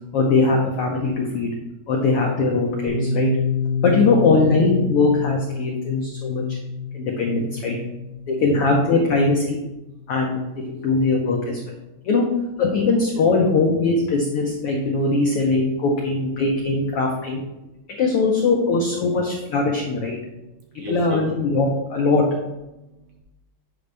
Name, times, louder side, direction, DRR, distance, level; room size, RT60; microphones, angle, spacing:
voice 1, 0.1-1.5 1.9-3.3 3.8-6.6 6.9-7.8 8.3-9.6 10.1-10.4 10.7-11.6 12.0-12.3 12.6-17.4 18.0-20.2 20.7-22.2, left 3 dB, 80° left, 0 dB, 1.2 m, -20 dB
Piano, 2.9-10.3, left 5 dB, 60° left, 1.9 m, -28 dB
voice 2, 6.3-7.1 8.2-8.3 9.9-10.1 10.7-10.9 12.0-12.1 13.1-13.2 17.7-18.0 20.2-21.2 22.7-23.2, right 1 dB, 85° right, 0 dB, 3.2 m, -40 dB
8.2 x 5.2 x 3.4 m, 0.97 s
omnidirectional pair, 3.7 m